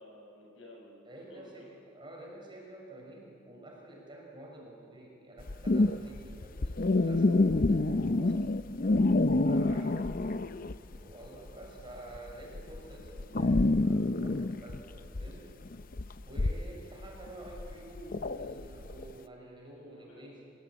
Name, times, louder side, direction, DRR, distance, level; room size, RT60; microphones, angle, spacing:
voice 1, 0.0-1.7 9.5-10.0 19.9-20.5, left 1 dB, 75° left, -1 dB, 8.0 m, -53 dB
voice 2, 1.0-8.5 9.4-10.1 10.7-15.5 16.2-20.5, right 1 dB, 25° right, -1 dB, 6.1 m, -49 dB
sound 1, 5.4-11.0 11.3-19.1, left 2 dB, 45° left, 0.6 m, -28 dB
26.5 x 19.5 x 8.8 m, 2.4 s
head